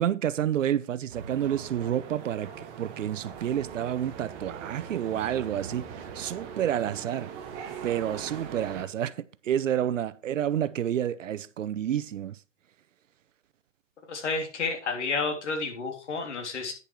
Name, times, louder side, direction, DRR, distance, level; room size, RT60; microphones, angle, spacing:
voice 1, 0.0-7.3 7.8-12.4, right 10 dB, 80° right, 0.8 m, -29 dB
sound 1, 1.1-8.8, right 7 dB, 15° right, 0.8 m, -41 dB
voice 2, 14.1-16.7, left 4 dB, 65° left, 3.4 m, -30 dB
10.0 x 6.9 x 4.7 m
hypercardioid pair, 170°, 37 cm